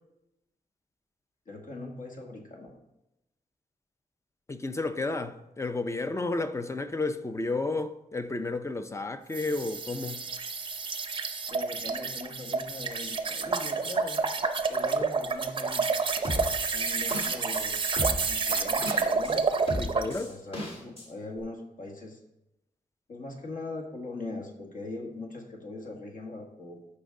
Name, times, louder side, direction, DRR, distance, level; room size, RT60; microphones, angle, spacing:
voice 1, 1.5-2.8 11.5-14.2 14.7-15.9 16.7-18.0 18.3-19.5 20.0-22.2 23.1-26.8, left 2 dB, 60° left, 1.7 m, -41 dB
voice 2, 4.5-10.3 19.7-20.3, left 3 dB, 20° left, 0.5 m, -32 dB
sound 1, 9.3-20.1, right 4 dB, 35° right, 0.6 m, -29 dB
sound 2, 15.8-15.9 16.2-17.6 18.0-19.3 19.7-21.1 21.4-21.5, left 1 dB, 40° left, 1.9 m, -35 dB
13.5 x 5.2 x 3.7 m
wide cardioid pair, 150°, 15 cm